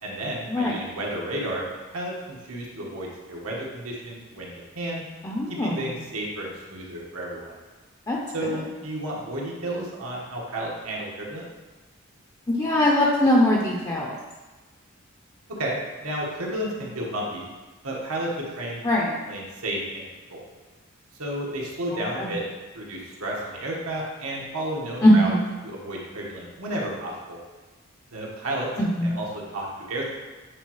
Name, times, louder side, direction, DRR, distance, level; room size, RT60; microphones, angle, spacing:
voice 1, 0.0-5.0 5.6-7.6 8.3-11.4 15.6-17.5 17.8-18.3 18.6-18.8 19.3-20.4 21.2-22.4 22.7-25.3 25.6-27.4 28.1-28.7 29.0-30.1, right 1 dB, 80° right, -3 dB, 1.4 m, -32 dB
voice 2, 5.2-6.0 8.1-8.5 12.5-14.1 18.8-19.2 22.1-22.4 25.0-25.5 28.8-29.1, left 1 dB, 20° left, -3 dB, 0.5 m, -21 dB
8.4 x 4.1 x 3.1 m, 1.2 s
head